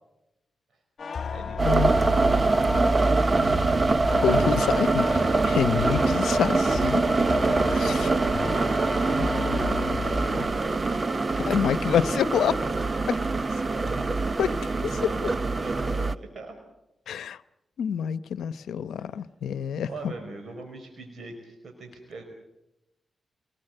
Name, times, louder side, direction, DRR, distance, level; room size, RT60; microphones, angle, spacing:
sound 1, 1.0-10.5, left 6 dB, 55° left, 1.4 m, -34 dB
voice 1, 1.3-3.0 7.4-10.8 11.4-12.5 13.6-16.6 19.0-19.1 19.9-22.2, right 3 dB, 55° right, 5 dB, 5.2 m, -41 dB
sound 2, 1.6-16.2, right 3 dB, 35° right, 0.9 m, -24 dB
voice 2, 4.2-7.0 7.7-8.0 11.5-12.5 13.1-13.2 14.4-14.5 15.0-15.1 17.1-17.4 17.8-20.1, left 8 dB, 85° left, 14 dB, 0.8 m, -27 dB
28.5 x 19.5 x 7.9 m, 0.90 s
cardioid pair, 65°, 0 cm